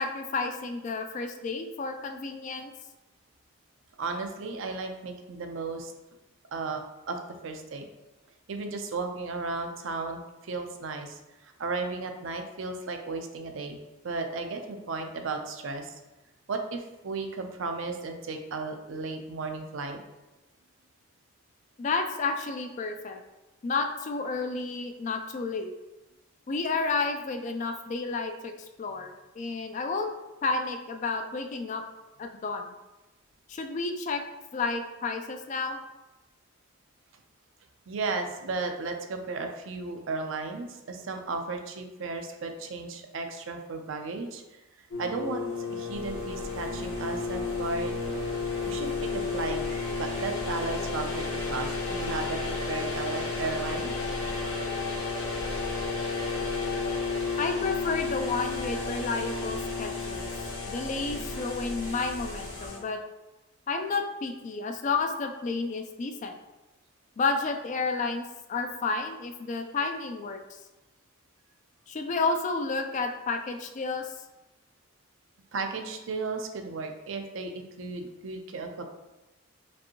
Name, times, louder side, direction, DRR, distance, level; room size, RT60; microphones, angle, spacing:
voice 1, 0.0-2.7 21.8-23.2 23.6-25.7 26.5-28.5 28.8-30.1 30.4-31.8 32.2-32.6 33.5-34.2 34.5-35.8 57.4-60.3 60.7-63.0 63.7-66.3 67.2-70.4 71.9-74.1, left 4 dB, 35° left, 6 dB, 0.3 m, -31 dB
voice 2, 4.0-5.9 6.5-6.8 7.1-7.9 8.5-11.2 11.6-13.8 14.0-15.9 16.5-20.0 37.9-48.0 48.6-49.6 50.0-53.9 75.5-78.8, right 3 dB, 65° right, 5 dB, 0.5 m, -34 dB
sound 1, 44.9-62.8, left 4 dB, 90° left, 1.1 m, -32 dB
sound 2, 45.9-62.7, equal, 45° right, 1.4 m, -43 dB
5.2 x 2.6 x 2.8 m, 1.0 s
head